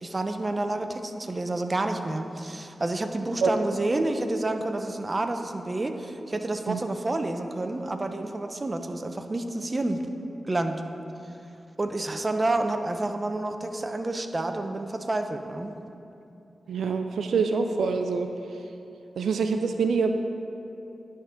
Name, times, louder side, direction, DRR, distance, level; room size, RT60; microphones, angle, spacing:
voice 1, 0.0-10.0 10.5-10.8 11.8-15.8, right 2 dB, 35° right, 6 dB, 0.6 m, -29 dB
voice 2, 16.7-18.3 19.2-20.1, right 5 dB, 90° right, 6 dB, 0.3 m, -25 dB
11.0 x 3.7 x 5.7 m, 2.8 s
cardioid pair, 60°, 0 cm